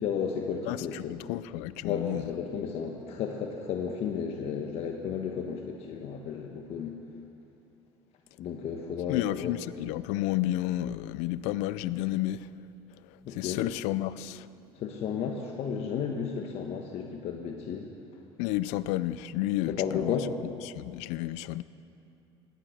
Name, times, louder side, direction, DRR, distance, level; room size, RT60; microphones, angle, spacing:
voice 1, 0.0-1.1 1.8-6.9 8.4-9.5 13.2-13.6 14.8-17.9 19.7-20.3, left 7 dB, 60° left, 1.3 m, -33 dB
voice 2, 0.7-2.3 9.1-12.5 13.1-14.5 18.4-21.6, left 15 dB, 80° left, 0.5 m, -31 dB
16.0 x 12.0 x 6.5 m
supercardioid pair, 95°, 12 cm